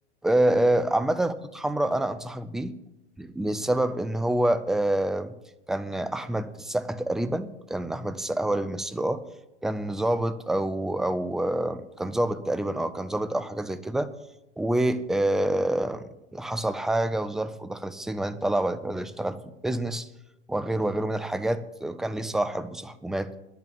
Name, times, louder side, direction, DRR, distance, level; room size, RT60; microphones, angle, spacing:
voice 1, 0.2-2.7 3.2-5.3 5.7-9.2 9.6-14.1 14.6-19.4 19.6-20.1 20.5-23.3, right 1 dB, ahead, 13 dB, 0.3 m, -27 dB
10.5 x 8.5 x 7.1 m, 0.95 s
hypercardioid pair, 105°, 34 cm